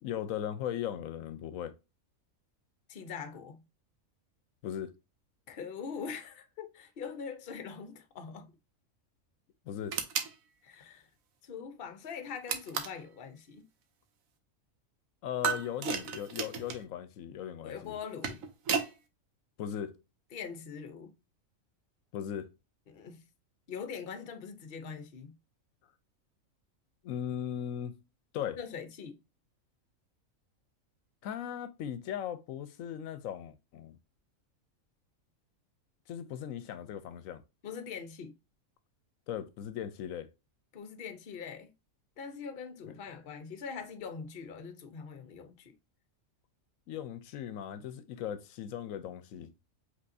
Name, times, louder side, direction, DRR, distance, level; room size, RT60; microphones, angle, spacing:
voice 1, 0.0-1.7 4.6-4.9 9.7-10.0 15.2-17.9 19.6-19.9 22.1-22.5 27.0-28.0 28.3-28.6 31.2-34.0 36.1-37.4 39.3-40.3 42.8-42.9 46.9-49.5, left 9 dB, 85° left, 1.0 m, -38 dB
voice 2, 2.9-3.6 5.5-8.5 10.6-11.1 11.4-13.7 17.6-18.4 20.3-21.1 22.9-23.2 23.7-25.3 28.6-29.2 37.6-38.3 40.7-41.7 42.2-45.7, left 6 dB, 50° left, 0.9 m, -42 dB
sound 1, 9.9-10.3 12.5-13.0 15.4-16.8 18.0-18.9, right 6 dB, 85° right, 1.2 m, -33 dB
5.3 x 3.4 x 2.6 m
omnidirectional pair, 1.4 m